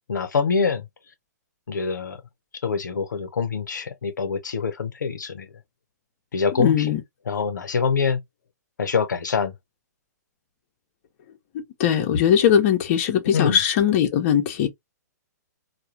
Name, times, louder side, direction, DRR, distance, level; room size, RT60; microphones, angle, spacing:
voice 1, 0.1-0.8 1.7-2.2 2.6-5.5 6.3-6.9 7.3-8.2 8.8-9.5 13.3-13.6, left 5 dB, 85° left, 0.6 m, -25 dB
voice 2, 6.6-7.0 11.8-14.7, left 9 dB, 45° left, 0.7 m, -20 dB
2.3 x 2.1 x 2.8 m
hypercardioid pair, 130°, 10 cm